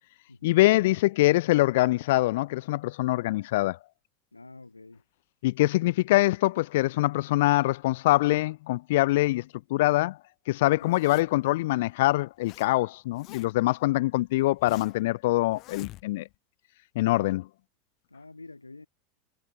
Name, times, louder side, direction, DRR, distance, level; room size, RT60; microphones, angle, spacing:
voice 1, 0.4-3.8 5.4-9.4 9.7-10.2 10.5-16.2 17.0-17.5, left 18 dB, 60° left, 0.4 m, -24 dB
voice 2, 4.3-5.0 10.8-11.0 18.1-18.9, left 3 dB, 85° left, 2.5 m, -47 dB
Zipper (clothing), 10.8-11.5 12.1-12.7 12.9-13.7 14.2-15.1 15.5-16.3, left 17 dB, 45° left, 4.3 m, -47 dB
figure-of-eight pair, 80°, 0 cm